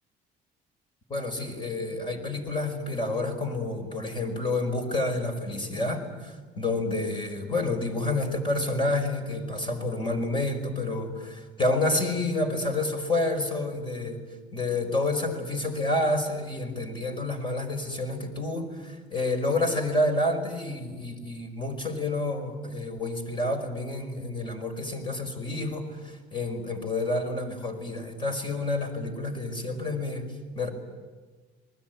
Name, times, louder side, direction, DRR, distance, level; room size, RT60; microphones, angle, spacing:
voice 1, 1.1-14.2 14.5-30.3 30.5-30.7, left 2 dB, 30° left, 6 dB, 5.2 m, -29 dB
28.0 x 21.0 x 9.4 m, 1.4 s
cardioid pair, 110°, 17 cm